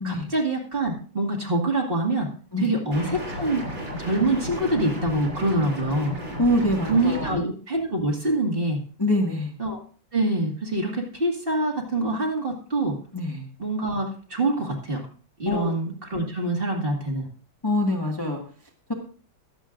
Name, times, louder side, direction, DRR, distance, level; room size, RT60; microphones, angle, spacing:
voice 1, 0.0-2.3 2.6-3.7 4.0-6.1 6.9-8.8 9.6-9.8 10.1-13.0 13.6-15.1 15.4-17.3, right 2 dB, 30° right, 0 dB, 2.3 m, -25 dB
sound 1, 2.9-7.3, left 1 dB, 70° right, 6.1 m, -33 dB
voice 2, 6.4-7.4 9.0-9.5 13.1-13.4 15.4-15.7 17.6-18.4, left 1 dB, 15° left, -1 dB, 1.5 m, -24 dB
22.5 x 7.9 x 2.6 m, 0.41 s
omnidirectional pair, 2.1 m